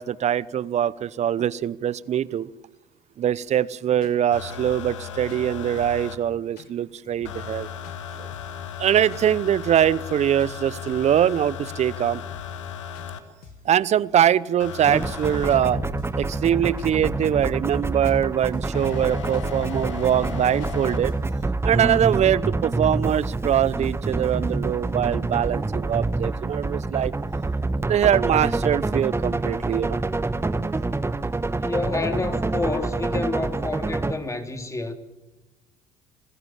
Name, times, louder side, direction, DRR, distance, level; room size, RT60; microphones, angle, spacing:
voice 1, 0.0-2.5 3.2-7.7 8.2-8.3 8.8-12.2 13.6-15.8 16.2-21.1 21.6-27.1 27.8-30.0, right 10 dB, 45° right, 0.8 m, -23 dB
sound 1, 3.5-3.6 4.0-4.2 4.5-5.0 5.3-5.4 5.8-6.1 6.6-6.7 7.0-7.6 7.8-8.0 8.3-8.6 9.1-9.3 9.6-10.1 10.4-10.5 10.9-11.2 11.7-11.9 12.1-12.7 12.9-13.1 13.4-13.7 14.2-14.4 14.7-15.2 15.5-15.6 16.0-16.3 16.8-16.9 17.3-17.8 18.1-18.2 18.5-18.8 19.3-19.5 19.8-20.3 20.6-20.8 21.1-21.4 21.9-22.1, left 7 dB, 70° left, 2.1 m, -49 dB
sound 2, 4.3-6.2 7.2-13.2 14.6-17.6 18.7-21.0 22.2-22.3, left 8 dB, 90° left, 1.6 m, -36 dB
sound 3, 14.9-34.1, right 3 dB, 15° right, 1.3 m, -27 dB
voice 2, 27.6-27.9 29.3-29.4 31.6-34.9, left 3 dB, 20° left, 3.3 m, -29 dB
27.5 x 16.0 x 7.5 m
hypercardioid pair, 60°, 15 cm